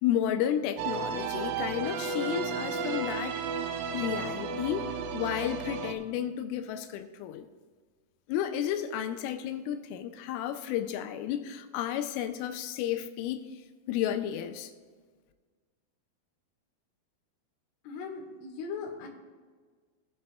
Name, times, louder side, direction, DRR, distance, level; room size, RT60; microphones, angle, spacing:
voice 1, 0.0-3.4 3.9-7.5 8.3-14.7, left 10 dB, 85° left, 7 dB, 3.2 m, -32 dB
sound 1, 0.8-6.0, right 5 dB, 80° right, 2.9 m, -33 dB
voice 2, 17.8-19.1, left 5 dB, 65° left, 0 dB, 2.4 m, -39 dB
18.5 x 7.8 x 2.2 m, 1.5 s
omnidirectional pair, 5.7 m